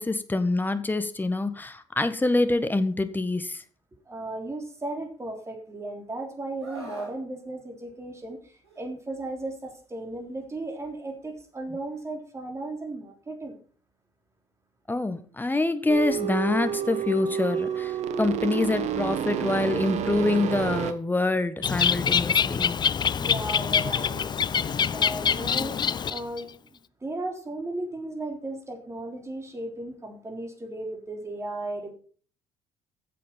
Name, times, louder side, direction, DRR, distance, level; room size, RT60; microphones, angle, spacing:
voice 1, 0.0-3.6 14.9-22.8, left 2 dB, 15° left, 10 dB, 1.5 m, -26 dB
voice 2, 4.1-13.6 23.1-24.3 24.5-25.8 26.1-31.9, right 2 dB, 20° right, 4 dB, 3.4 m, -36 dB
Screaming, 6.6-7.2 8.6-8.9, right 2 dB, 85° right, 2.7 m, -41 dB
sound 1, 15.9-20.9, right 8 dB, 55° right, 1.2 m, -29 dB
Bird, 21.6-26.4, left 7 dB, 30° left, 0.6 m, -25 dB
14.0 x 7.7 x 5.7 m, 0.44 s
figure-of-eight pair, 55°, 14 cm